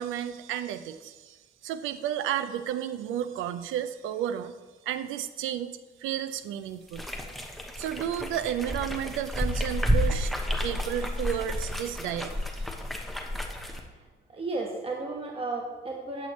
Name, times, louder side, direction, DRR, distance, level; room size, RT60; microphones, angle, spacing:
voice 1, 0.0-4.6 4.9-5.7 6.0-7.0 7.8-12.4, right 10 dB, 85° right, 12 dB, 0.5 m, -32 dB
sound 1, 6.9-13.8, equal, ahead, 1.0 m, -31 dB
voice 2, 14.3-16.3, right 3 dB, 30° right, 0 dB, 1.1 m, -33 dB
8.3 x 8.1 x 3.1 m, 1.3 s
cardioid pair, 90°, 20 cm